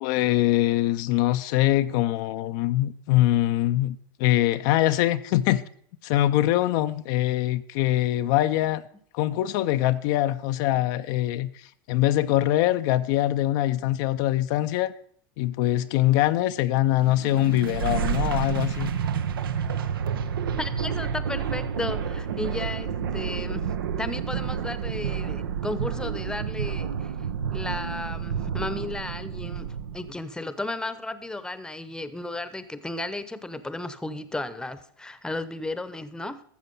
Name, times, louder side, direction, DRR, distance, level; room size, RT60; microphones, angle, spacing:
voice 1, 0.0-5.6 6.0-8.8 9.1-14.9 15.4-18.9, left 15 dB, 60° left, 0.5 m, -23 dB
sound 1, 17.0-30.1, right 7 dB, 85° right, 0.7 m, -29 dB
voice 2, 20.6-27.1 27.5-36.4, left 2 dB, 5° left, 0.8 m, -34 dB
13.0 x 7.2 x 5.5 m
hypercardioid pair, 95°, 12 cm